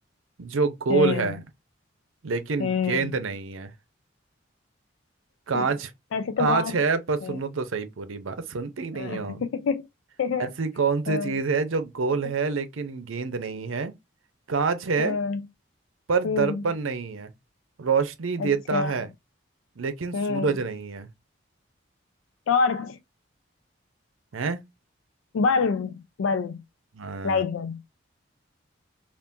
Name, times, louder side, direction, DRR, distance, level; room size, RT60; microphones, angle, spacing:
voice 1, 0.4-1.4 2.2-3.7 5.5-5.9 6.4-9.4 10.4-13.9 14.5-15.2 16.1-17.3 17.8-19.1 19.8-21.1 24.3-24.6 26.9-27.4, right 4 dB, 85° right, 0.6 m, -27 dB
voice 2, 0.9-1.3 2.6-3.1 5.5-5.6 6.1-6.8 7.2-7.4 8.9-9.9 10.2-10.5 11.1-11.3 15.0-15.4 16.2-16.6 18.4-18.9 20.1-20.5 22.5-23.0 25.3-26.6 27.2-27.8, left 5 dB, 80° left, 0.4 m, -26 dB
3.6 x 2.5 x 2.6 m
head